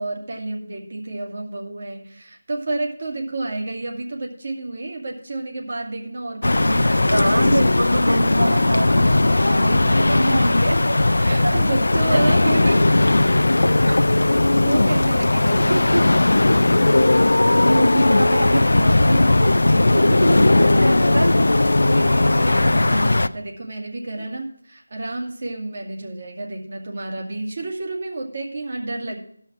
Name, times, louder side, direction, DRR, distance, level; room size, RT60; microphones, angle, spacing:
voice 1, 0.0-7.5 11.2-13.2 13.8-14.1 14.5-15.8 19.8-20.6 21.8-29.2, right 2 dB, 50° right, 1 dB, 2.2 m, -30 dB
sound 1, 6.4-23.3, left 2 dB, 70° left, 0.5 m, -17 dB
voice 2, 6.7-10.8 11.4-11.6 12.3-12.4 15.5-16.0 17.4-19.6 19.9-21.3, right 1 dB, 80° right, 5 dB, 1.6 m, -25 dB
14.0 x 5.6 x 6.0 m, 0.63 s
figure-of-eight pair, 165°, 0 cm